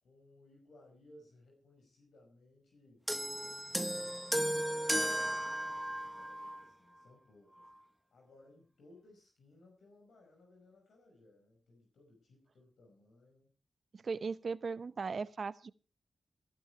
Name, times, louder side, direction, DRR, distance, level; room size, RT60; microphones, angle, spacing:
voice 1, 0.0-3.1 3.7-4.5 4.9-7.7 8.1-13.5, left 1 dB, 90° left, 5.2 m, -62 dB
sound 1, 3.1-6.7 7.6-7.7, right 1 dB, 5° right, 1.2 m, -35 dB
voice 2, 13.9-15.7, right 5 dB, 65° right, 0.8 m, -38 dB
17.0 x 12.0 x 4.5 m
cardioid pair, 55°, 0 cm